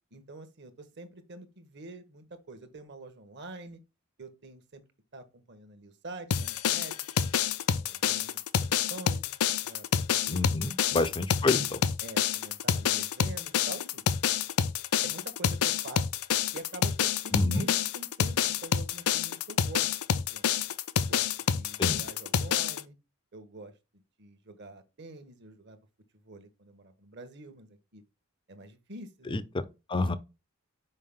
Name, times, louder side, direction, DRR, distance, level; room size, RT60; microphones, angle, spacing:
voice 1, 0.1-3.8 4.2-4.8 5.1-7.3 7.7-10.4 10.8-11.0 11.7-14.0 15.0-16.1 16.5-20.5 21.0-23.0 23.3-25.8 26.2-28.0 28.5-29.4 30.0-30.2, right 2 dB, 50° right, 1.1 m, -46 dB
sound 1, 6.3-22.8, left 8 dB, 85° left, 0.5 m, -28 dB
voice 2, 10.3-11.8 17.3-17.6 21.8-22.0 29.3-29.6 29.9-30.2, left 2 dB, 20° left, 0.5 m, -28 dB
5.5 x 4.8 x 3.6 m
head